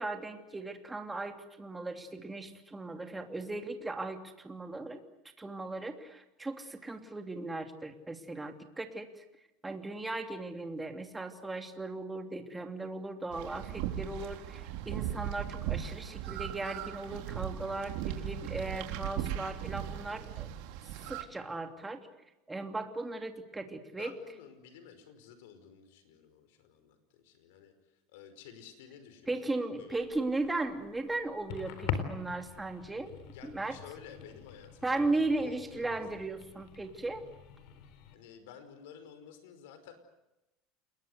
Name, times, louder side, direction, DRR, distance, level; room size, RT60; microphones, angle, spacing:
voice 1, 0.0-5.0 5.4-9.2 9.6-20.5 21.0-22.0 22.5-24.1 29.3-33.1 33.4-33.8 34.8-37.2, right 2 dB, 10° right, 5 dB, 3.0 m, -37 dB
sound 1, 13.3-21.2, right 11 dB, 75° right, 3.8 m, -38 dB
voice 2, 24.0-30.2 33.3-36.3 38.1-39.9, left 8 dB, 90° left, 9 dB, 5.2 m, -52 dB
sound 2, 30.0-38.2, left 8 dB, 70° left, 4.2 m, -43 dB
29.0 x 21.5 x 8.1 m, 0.96 s
supercardioid pair, 130°, 0 cm